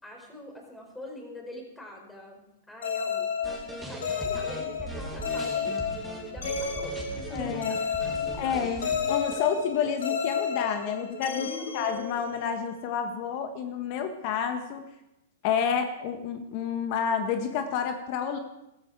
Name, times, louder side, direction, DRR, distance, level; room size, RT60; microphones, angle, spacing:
voice 1, 0.0-5.8 6.3-8.7 9.3-9.4 11.3-11.9, left 1 dB, 10° left, 0 dB, 4.6 m, -43 dB
sound 1, 2.8-12.6, left 6 dB, 80° left, 2.8 m, -32 dB
sound 2, 3.4-9.4, right 1 dB, 10° right, 2.9 m, -40 dB
sound 3, 3.8-12.2, right 8 dB, 40° right, 2.1 m, -46 dB
voice 2, 7.3-7.8 8.0-14.8 15.4-18.4, left 7 dB, 50° left, 6 dB, 1.5 m, -30 dB
14.5 x 13.0 x 4.7 m, 0.87 s
hypercardioid pair, 115°, 0 cm